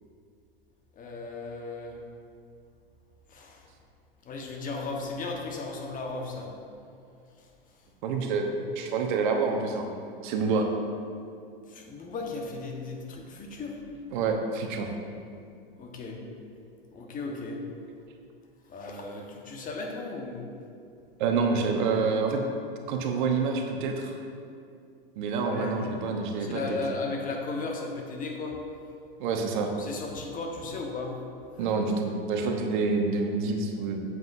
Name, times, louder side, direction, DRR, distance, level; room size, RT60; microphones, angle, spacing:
voice 1, 0.9-2.0 3.3-3.7 4.2-6.5 7.4-7.5 11.6-13.8 15.7-16.2 16.9-17.6 18.7-20.5 25.4-25.8 26.4-28.6 29.8-31.2 31.5-31.7, left 3 dB, 30° left, 1 dB, 1.3 m, -36 dB
voice 2, 8.0-9.9 10.2-10.7 14.1-14.9 21.2-22.4 22.9-24.1 25.2-26.8 29.2-29.7 31.6-34.0, right 4 dB, 55° right, 3 dB, 1.0 m, -27 dB
9.1 x 7.9 x 2.7 m, 2.4 s
hypercardioid pair, 95°, 29 cm